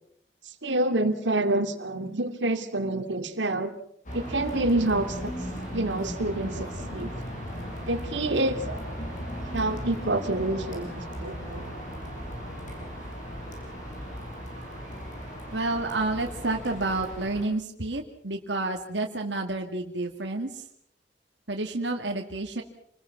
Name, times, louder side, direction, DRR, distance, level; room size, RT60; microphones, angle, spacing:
voice 1, 0.6-3.7 4.1-5.3 5.7-7.1 7.8-8.8 9.5-11.6, right 2 dB, 90° right, 6 dB, 2.5 m, -27 dB
sound 1, 4.0-17.4, equal, 45° left, 7.3 m, -37 dB
voice 2, 15.5-20.6 21.5-22.6, right 2 dB, 75° right, 2 dB, 2.2 m, -30 dB
28.0 x 21.0 x 6.0 m, 0.69 s
head